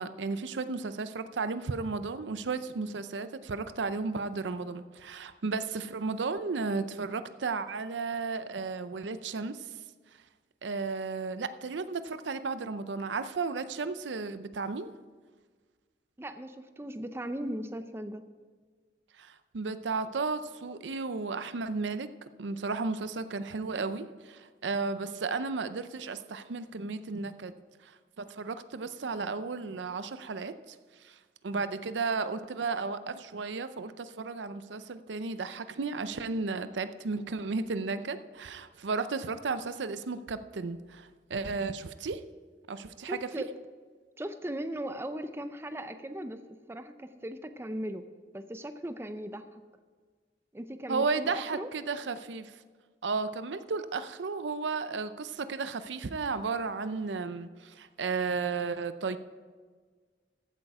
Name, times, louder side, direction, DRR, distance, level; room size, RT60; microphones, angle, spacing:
voice 1, 0.0-9.7 10.6-14.9 19.2-22.1 22.4-27.5 27.8-42.2 42.7-43.4 50.9-52.6 53.0-59.2, right 4 dB, 85° right, 12 dB, 0.6 m, -34 dB
voice 2, 16.2-18.2 43.1-43.6 44.2-46.4 46.7-48.0 48.3-49.6 50.5-51.7, right 1 dB, 15° right, 10 dB, 0.5 m, -38 dB
14.5 x 8.3 x 4.8 m, 1.5 s
head